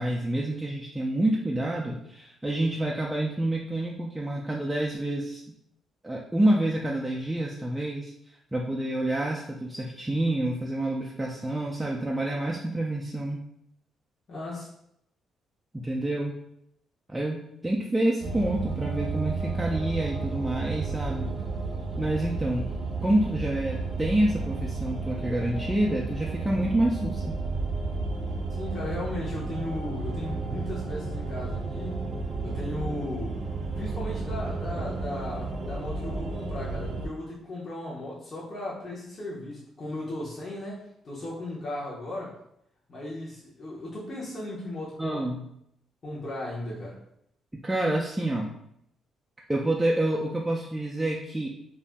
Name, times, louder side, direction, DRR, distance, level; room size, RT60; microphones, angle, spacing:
voice 1, 0.0-5.4 6.0-8.1 8.5-13.4 15.7-16.4 17.1-21.3 22.0-22.7 23.0-27.4 45.0-45.4 47.6-48.5 49.5-51.5, right 1 dB, 10° right, -3 dB, 0.3 m, -28 dB
voice 2, 14.3-14.7 28.5-31.9 32.4-33.5 33.8-42.3 42.9-45.2 46.0-47.0, left 1 dB, 40° left, -6 dB, 0.8 m, -36 dB
sound 1, 18.2-37.1, right 3 dB, 65° right, 0.6 m, -32 dB
2.4 x 2.0 x 3.4 m, 0.76 s
cardioid pair, 90°, 0 cm